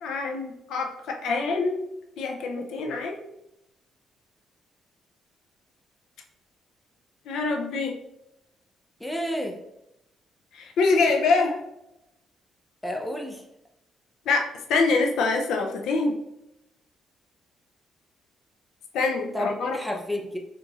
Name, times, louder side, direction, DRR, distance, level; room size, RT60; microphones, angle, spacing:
voice 1, 0.0-1.8 2.2-3.2 7.3-8.0 10.5-11.6 14.3-16.2 18.9-19.8, left 3 dB, 80° left, 2 dB, 0.5 m, -25 dB
voice 2, 9.0-9.6 12.8-13.4 19.3-20.4, equal, 5° left, 2 dB, 0.7 m, -30 dB
4.8 x 3.1 x 2.5 m, 0.85 s
cardioid pair, 90°, 0 cm